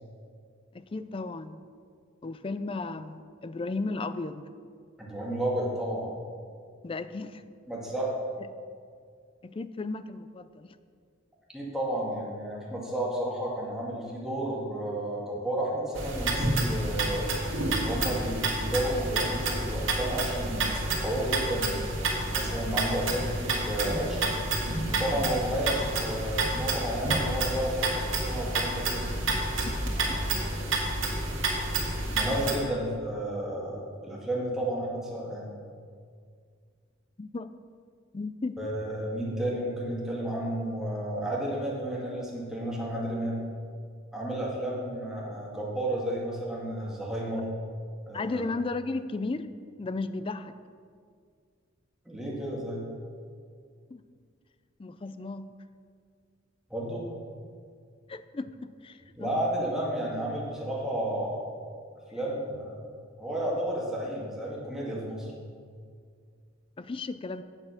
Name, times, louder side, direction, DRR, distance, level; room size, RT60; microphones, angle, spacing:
voice 1, 0.7-1.6 2.2-4.5 6.8-7.4 9.4-10.8 29.3-30.2 37.2-37.5 38.1-38.6 48.1-49.5 49.8-50.5 53.9-54.0 54.8-55.6 58.1-59.4 66.8-67.4, left 3 dB, 25° left, 12 dB, 0.4 m, -35 dB
voice 2, 5.0-6.2 7.7-8.2 11.5-17.4 17.7-24.4 24.8-29.1 29.9-30.8 32.1-35.5 38.6-43.4 44.1-47.5 48.1-48.4 52.1-52.8 56.7-57.0 59.2-61.4 62.1-62.7 63.2-65.3, right 1 dB, 5° right, -5 dB, 2.0 m, -32 dB
sound 1, 16.0-32.6, right 2 dB, 75° right, 2.0 m, -29 dB
8.8 x 7.7 x 5.8 m, 2.1 s
head